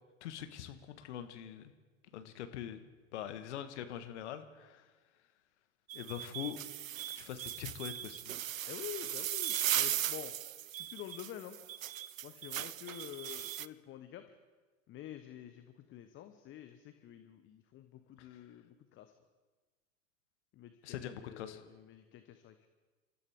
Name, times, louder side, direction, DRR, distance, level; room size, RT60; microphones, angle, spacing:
voice 1, 0.2-1.7 2.1-2.8 3.1-4.9 5.9-6.6 7.1-8.3 18.2-18.4 20.8-21.6, left 10 dB, 60° left, 9 dB, 1.4 m, -43 dB
sound 1, 5.9-13.7, right 11 dB, 80° right, 0.5 m, -38 dB
voice 2, 8.7-10.3 10.7-11.6 12.2-14.2 14.9-19.1 20.5-22.7, left 11 dB, 30° left, 9 dB, 0.9 m, -48 dB
28.0 x 14.0 x 3.6 m, 1.3 s
figure-of-eight pair, 90°, 39 cm